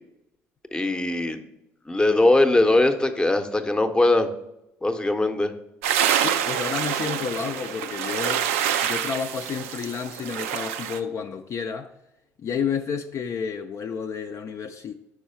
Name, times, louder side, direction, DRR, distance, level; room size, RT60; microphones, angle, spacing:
voice 1, 0.7-1.4 1.9-4.3 4.8-5.5, left 2 dB, 10° left, 0.7 m, -20 dB
sound 1, 5.8-11.0, right 9 dB, 85° right, 0.3 m, -26 dB
voice 2, 6.2-8.5 8.8-11.9 12.4-14.9, left 6 dB, 45° left, 0.4 m, -30 dB
4.8 x 4.6 x 4.3 m
hypercardioid pair, 65°, 7 cm